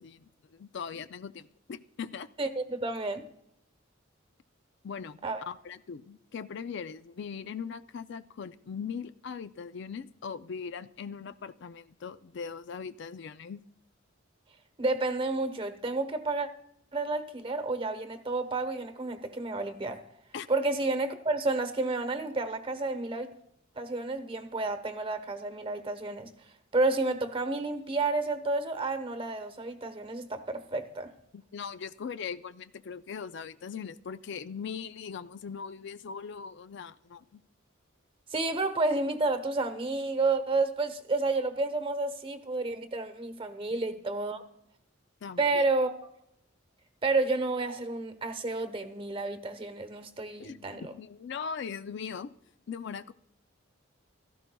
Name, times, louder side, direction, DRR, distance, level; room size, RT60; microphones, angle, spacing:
voice 1, 0.0-2.3 4.8-5.2 5.5-13.6 20.3-20.5 31.3-37.4 43.7-43.8 45.2-45.6 50.4-52.3 52.7-53.1, left 6 dB, 60° left, 0.4 m, -40 dB
voice 2, 2.4-3.2 5.2-5.5 14.8-16.5 16.9-20.0 20.5-23.3 23.8-26.3 26.7-31.1 38.3-44.4 45.4-46.0 47.0-50.9, right 3 dB, 25° right, 1.0 m, -30 dB
16.5 x 14.0 x 2.3 m
head